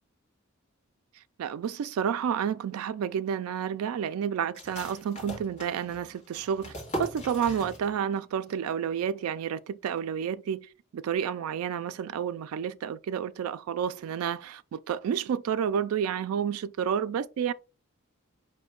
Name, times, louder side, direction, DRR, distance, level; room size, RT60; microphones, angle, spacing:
voice 1, 1.4-6.7 7.0-10.6 10.9-17.5, right 8 dB, 90° right, 0.3 m, -30 dB
sound 1, 4.5-8.2 8.5-8.6 9.0-9.5, equal, 35° left, 1.6 m, -39 dB
5.1 x 2.6 x 3.6 m
head